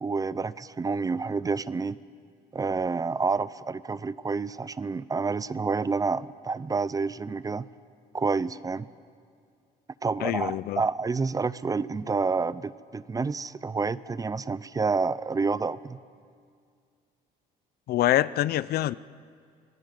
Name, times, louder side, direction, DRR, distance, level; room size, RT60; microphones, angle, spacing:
voice 1, 0.0-2.0 2.5-7.7 8.1-8.9 10.0-16.0, right 4 dB, 20° right, 18 dB, 0.5 m, -29 dB
voice 2, 10.2-10.8 17.9-18.9, left 14 dB, 65° left, 18 dB, 0.5 m, -25 dB
26.0 x 18.5 x 7.6 m, 2.2 s
cardioid pair, 110°, 17 cm